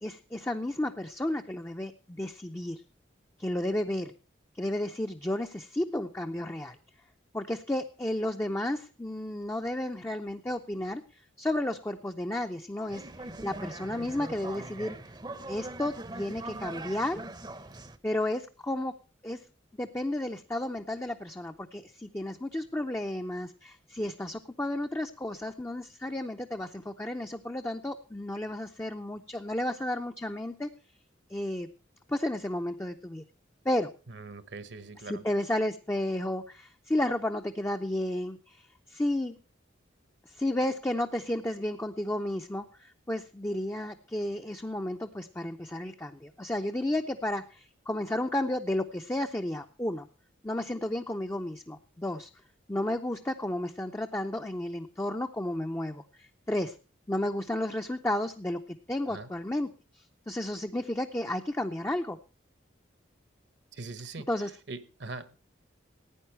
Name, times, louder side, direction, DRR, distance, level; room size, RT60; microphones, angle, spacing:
voice 1, 0.0-2.8 3.4-4.1 4.6-6.8 7.3-11.0 11.4-13.1 13.4-15.0 15.5-17.2 18.0-18.9 19.2-19.4 19.7-30.7 31.3-31.7 32.1-33.2 33.6-33.9 35.1-39.4 40.3-50.1 50.4-52.3 52.7-56.8 57.1-58.6 58.9-59.7 60.0-62.2 64.3-64.5, left 1 dB, 15° left, 4 dB, 0.5 m, -32 dB
sound 1, 12.9-18.0, right 2 dB, 20° right, 0.7 m, -41 dB
voice 2, 34.1-35.2 59.1-59.3 63.7-64.3 64.7-65.4, right 3 dB, 65° right, 14 dB, 1.1 m, -42 dB
15.5 x 9.4 x 4.5 m, 0.35 s
head